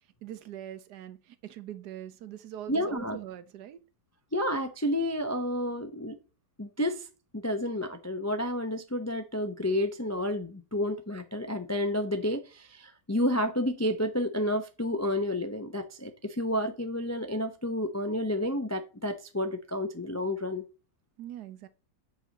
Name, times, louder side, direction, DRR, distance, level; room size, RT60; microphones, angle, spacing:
voice 1, 0.2-3.8 21.2-21.7, right 11 dB, 75° right, 1.4 m, -42 dB
voice 2, 2.7-3.2 4.3-6.2 6.6-7.1 7.3-20.6, left 1 dB, 20° left, 0.4 m, -30 dB
8.4 x 6.5 x 4.0 m
omnidirectional pair, 1.8 m